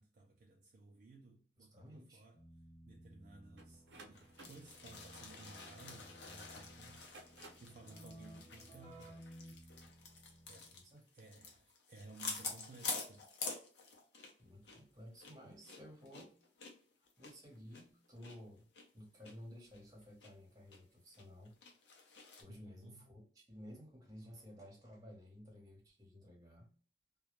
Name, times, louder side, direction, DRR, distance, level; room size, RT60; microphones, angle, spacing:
voice 1, 0.0-2.4 2.8-9.2 10.4-10.8 11.1-13.3 22.5-23.1, right 3 dB, 45° right, 0.3 m, -58 dB
voice 2, 1.6-2.3 10.7-11.0 14.4-16.3 17.2-18.7 18.9-21.6 22.4-26.7, equal, 20° right, 0.9 m, -55 dB
Keyboard (musical), 2.3-10.8, right 1 dB, 20° left, 0.7 m, -58 dB
sound 1, 3.6-6.3 6.9-7.8, right 2 dB, 85° right, 0.6 m, -58 dB
sound 2, 4.1-14.4 14.7-14.8 15.2-18.4 18.7-18.8 19.2-19.3 19.7-20.3 20.7-20.8 21.1-22.4, left 4 dB, 75° left, 0.6 m, -48 dB
2.2 x 2.1 x 2.9 m
head